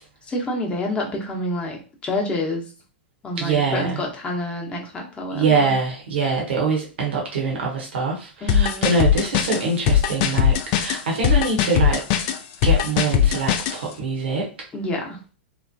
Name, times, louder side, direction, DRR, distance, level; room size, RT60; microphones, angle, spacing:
voice 1, 0.3-2.6 3.2-5.7 8.4-8.9 14.7-15.2, left 1 dB, 20° left, 0 dB, 0.8 m, -28 dB
voice 2, 3.4-4.0 5.3-12.0 12.6-14.5, right 4 dB, 70° right, -1 dB, 0.9 m, -24 dB
sound 1, 8.5-13.8, left 9 dB, 45° left, 0.4 m, -19 dB
3.0 x 2.1 x 2.6 m, 0.35 s
hypercardioid pair, 105°, 6 cm